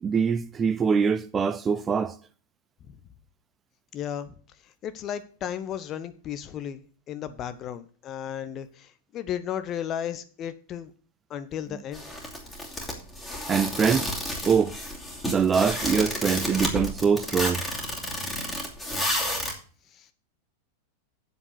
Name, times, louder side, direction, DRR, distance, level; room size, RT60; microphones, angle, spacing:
voice 1, 0.0-2.2 13.5-14.1 14.5-14.7 15.2-17.6, right 6 dB, 20° right, 0.5 m, -23 dB
voice 2, 3.9-4.3 4.8-10.9 11.3-12.0 19.9-20.1, left 9 dB, 30° left, 0.9 m, -34 dB
sound 1, 11.9-19.5, left 1 dB, 10° left, 2.7 m, -31 dB
8.1 x 7.2 x 6.7 m
figure-of-eight pair, 90°, 0 cm